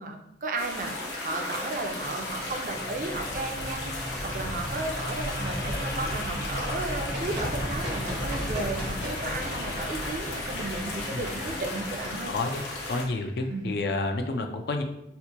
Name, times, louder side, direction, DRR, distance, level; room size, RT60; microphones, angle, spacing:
voice 1, 0.0-12.3 13.5-13.7, right 2 dB, 45° right, 4 dB, 0.4 m, -34 dB
sound 1, 0.6-13.0, left 2 dB, 80° left, 0.8 m, -35 dB
sound 2, 1.9-13.6, equal, 45° left, 0.8 m, -36 dB
Run, 6.7-12.7, equal, 85° right, 1.1 m, -40 dB
voice 2, 11.1-11.6 12.3-12.6 12.9-14.8, left 2 dB, 60° left, 5 dB, 0.4 m, -30 dB
4.3 x 2.1 x 2.8 m, 0.82 s
head